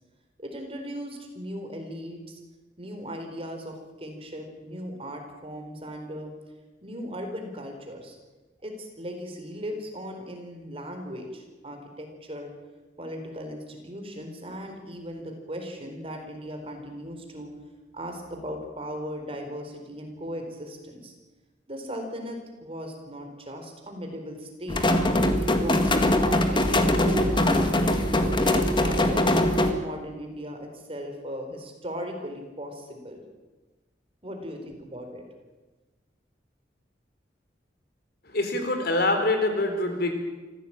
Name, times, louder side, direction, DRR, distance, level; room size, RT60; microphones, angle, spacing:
voice 1, 0.4-2.2 2.8-6.3 6.8-8.2 8.6-12.5 13.0-17.5 17.9-21.1 21.7-24.9 25.5-29.2 29.6-33.2 34.2-35.2, equal, 30° right, 4 dB, 4.4 m, -37 dB
sound 1, 24.7-29.7, left 1 dB, 25° left, 2.0 m, -22 dB
voice 2, 38.3-40.1, left 2 dB, 60° left, 6 dB, 4.2 m, -25 dB
25.0 x 16.0 x 8.9 m, 1.2 s
head